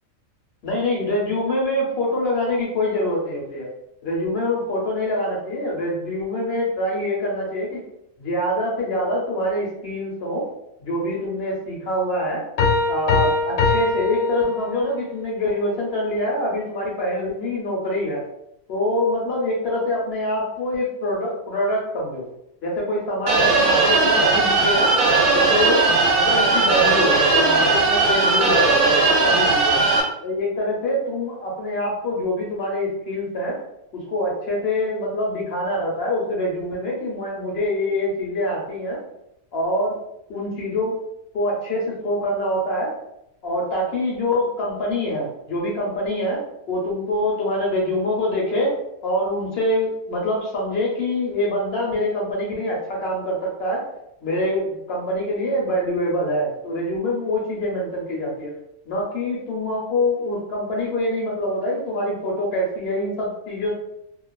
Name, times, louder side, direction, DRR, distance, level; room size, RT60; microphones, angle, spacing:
voice 1, 0.6-3.7 4.0-7.8 8.2-10.5 10.8-12.4 12.9-18.2 18.7-22.3 22.6-24.9 25.3-29.9 30.2-33.6 33.9-39.0 39.5-40.0 40.3-41.0 41.3-42.9 43.4-48.8 49.0-53.8 54.2-58.5 58.9-63.8, left 1 dB, 60° left, -3 dB, 0.7 m, -25 dB
sound 1, 12.6-15.1, left 4 dB, 85° left, 1.0 m, -22 dB
sound 2, 23.3-30.0, right 3 dB, 65° right, 0.8 m, -18 dB
2.5 x 2.3 x 2.2 m, 0.79 s
omnidirectional pair, 1.4 m